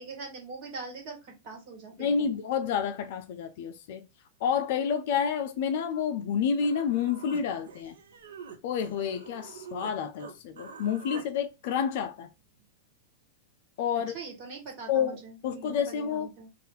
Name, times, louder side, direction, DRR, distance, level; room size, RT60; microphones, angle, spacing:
voice 1, 0.0-2.3 13.9-16.5, right 4 dB, 45° right, 1.4 m, -43 dB
voice 2, 2.0-4.1 4.4-8.0 8.6-12.3 13.8-14.1 14.9-15.2 15.4-16.3, left 7 dB, 55° left, 0.4 m, -29 dB
Human voice, 6.6-9.9 10.2-11.3, right 5 dB, 70° right, 0.6 m, -45 dB
2.7 x 2.4 x 3.5 m
figure-of-eight pair, 95°, 0 cm